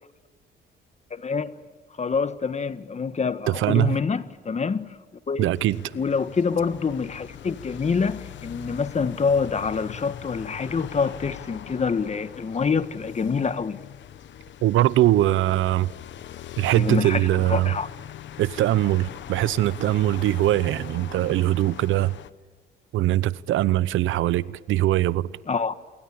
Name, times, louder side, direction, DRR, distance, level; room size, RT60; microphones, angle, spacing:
voice 1, 1.1-1.5 2.0-4.9 5.3-5.5 5.9-13.8 16.7-17.2 17.5-17.9 25.5-25.7, left 5 dB, 35° left, 1.5 m, -26 dB
voice 2, 3.5-4.0 5.4-5.8 14.6-15.9 16.6-17.7 18.4-22.2 22.9-25.3, right 14 dB, 80° right, 0.8 m, -22 dB
sound 1, 5.5-22.3, left 11 dB, 65° left, 1.0 m, -41 dB
28.0 x 23.0 x 8.8 m
cardioid pair, 90°, 20 cm